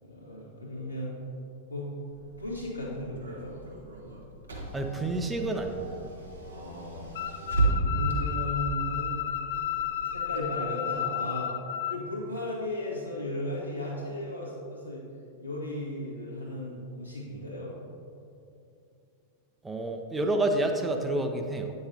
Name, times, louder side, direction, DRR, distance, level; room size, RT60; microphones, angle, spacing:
voice 1, 0.0-1.1 1.7-1.9 2.4-3.5 6.4-7.1 7.8-9.2 10.0-11.5 11.9-15.0 15.4-17.7, left 1 dB, 90° left, -7 dB, 1.8 m, -36 dB
Car / Engine, 2.1-10.4, right 2 dB, 75° right, 1.1 m, -34 dB
voice 2, 4.7-6.0 19.6-21.7, right 2 dB, 10° right, 4 dB, 0.6 m, -29 dB
sound 1, 7.1-12.0, left 10 dB, 55° left, 0.3 m, -32 dB
8.7 x 6.7 x 2.8 m, 2.6 s
figure-of-eight pair, 90°, 0 cm